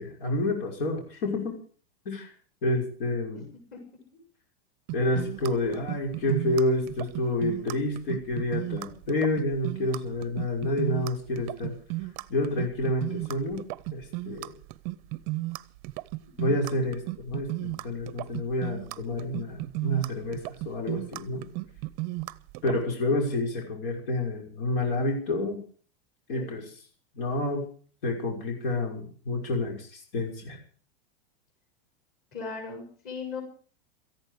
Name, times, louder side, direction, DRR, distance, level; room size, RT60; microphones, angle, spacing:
voice 1, 0.0-1.6 2.1-2.3 2.6-3.4 4.9-11.7 12.3-13.6 13.9-14.5 16.4-21.5 22.6-25.6 26.3-26.7 27.2-27.6 28.0-30.6, left 1 dB, 65° left, 2 dB, 5.8 m, -29 dB
voice 2, 3.3-3.8 5.1-5.2 16.2-16.3 26.3-26.5 32.3-33.4, left 5 dB, 30° left, 3 dB, 7.5 m, -39 dB
sound 1, 4.9-22.8, right 20 dB, 30° right, 0.7 m, -34 dB
18.0 x 14.5 x 5.1 m, 0.43 s
supercardioid pair, 170°, 30 cm